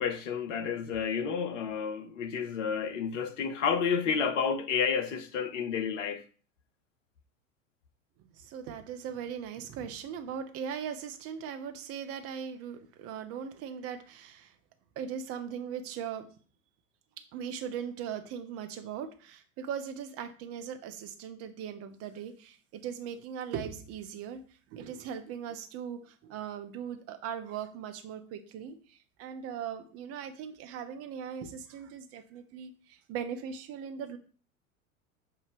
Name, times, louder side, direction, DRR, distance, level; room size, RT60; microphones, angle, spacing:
voice 1, 0.0-6.2, left 6 dB, 60° left, 1.0 m, -30 dB
voice 2, 8.2-14.5 15.0-16.2 17.3-24.4 24.7-34.2, right 8 dB, 35° right, 0.9 m, -39 dB
6.8 x 2.7 x 5.1 m
figure-of-eight pair, 85°, 42 cm